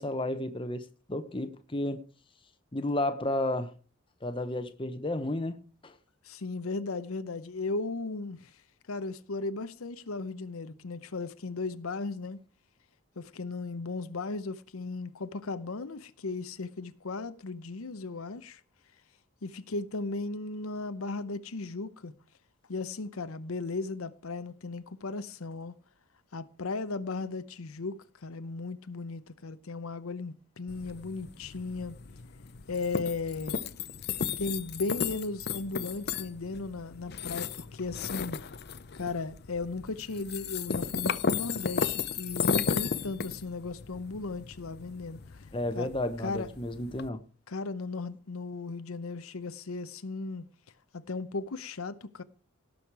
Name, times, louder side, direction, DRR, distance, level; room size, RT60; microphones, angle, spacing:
voice 1, 0.0-2.0 2.7-3.7 4.2-5.9 45.5-47.2, left 1 dB, 25° left, 0.9 m, -32 dB
voice 2, 6.2-8.5 8.9-12.4 13.2-18.6 19.4-22.1 22.7-25.7 26.3-31.9 32.7-33.6 34.4-38.4 38.9-45.5 45.8-45.9 46.2-46.5 47.5-50.4 50.9-52.2, left 3 dB, 80° left, 0.8 m, -36 dB
sound 1, 30.7-47.1, left 6 dB, 50° left, 0.6 m, -35 dB
17.5 x 6.5 x 4.7 m
head